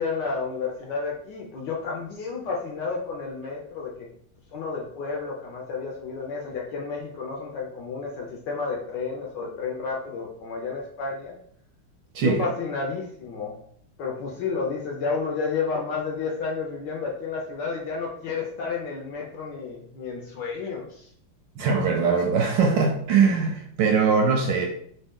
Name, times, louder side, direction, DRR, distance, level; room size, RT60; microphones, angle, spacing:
voice 1, 0.0-4.1 4.5-11.4 12.2-13.6 14.0-21.1, left 4 dB, 70° left, -1 dB, 1.1 m, -31 dB
voice 2, 21.6-24.7, right 5 dB, 75° right, 2 dB, 1.1 m, -21 dB
3.5 x 2.7 x 3.5 m, 0.65 s
omnidirectional pair, 2.3 m